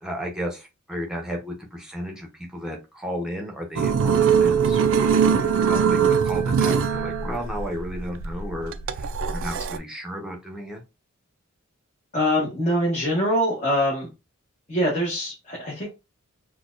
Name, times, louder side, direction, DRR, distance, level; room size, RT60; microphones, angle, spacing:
voice 1, 0.0-4.8 5.2-10.8, equal, 5° right, 0 dB, 0.8 m, -33 dB
sound 1, 3.8-9.8, right 7 dB, 65° right, 0.3 m, -21 dB
voice 2, 12.1-14.1 14.7-15.9, equal, 30° left, -4 dB, 1.1 m, -23 dB
4.2 x 2.3 x 2.4 m, 0.26 s
head